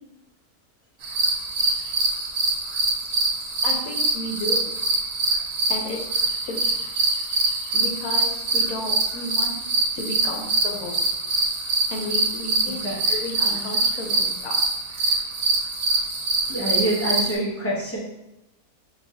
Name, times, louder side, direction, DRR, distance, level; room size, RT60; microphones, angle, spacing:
sound 1, 1.0-17.3, right 2 dB, 70° right, 1.1 m, -24 dB
voice 1, 3.6-4.7 5.7-6.1 6.5-6.6 7.7-9.5 9.9-11.0 11.9-12.8 13.1-14.5, left 2 dB, 70° left, 1 dB, 1.2 m, -32 dB
voice 2, 12.8-13.2 15.0-15.2 16.4-18.0, right 1 dB, 20° left, -5 dB, 0.4 m, -26 dB
5.0 x 2.8 x 2.6 m, 0.91 s
omnidirectional pair, 1.6 m